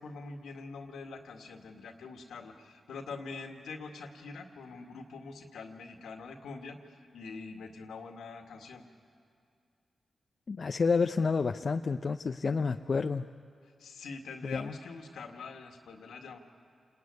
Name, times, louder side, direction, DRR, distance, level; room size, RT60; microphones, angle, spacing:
voice 1, 0.0-8.8 13.8-16.4, left 4 dB, 85° left, 4 dB, 2.0 m, -44 dB
voice 2, 10.5-13.3 14.4-14.8, left 4 dB, 55° left, 7 dB, 0.6 m, -29 dB
28.0 x 20.0 x 9.6 m, 2.3 s
supercardioid pair, 45°, 0 cm